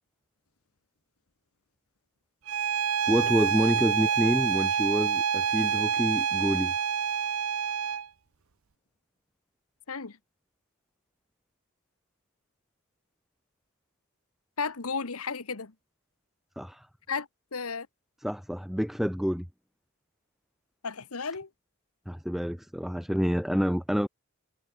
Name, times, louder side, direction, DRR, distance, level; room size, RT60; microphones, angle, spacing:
Bowed string instrument, 2.5-8.1, right 8 dB, 70° right, 0.7 m, -27 dB
voice 1, 3.1-6.7 16.6-16.9 18.2-19.5 22.1-24.1, equal, ahead, 1.3 m, -28 dB
voice 2, 14.6-15.7 17.1-17.9 20.8-21.5, left 5 dB, 80° left, 1.4 m, -34 dB
head